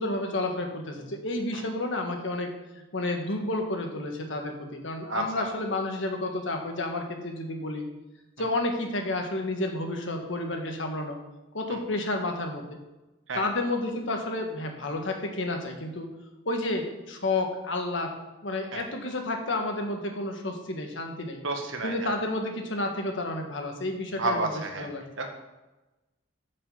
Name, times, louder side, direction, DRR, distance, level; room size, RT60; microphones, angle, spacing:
voice 1, 0.0-2.5 2.9-7.9 8.4-11.2 11.5-12.6 13.3-16.1 16.4-18.1 18.4-21.4 21.8-24.5 24.8-25.0, left 2 dB, 70° left, 3 dB, 1.6 m, -30 dB
voice 2, 5.1-5.5 11.7-11.8 13.3-13.4 18.7-18.8 21.4-22.1 24.2-24.9 25.2-25.3, right 2 dB, 75° right, 3 dB, 1.5 m, -30 dB
8.4 x 5.6 x 7.1 m, 1.1 s
head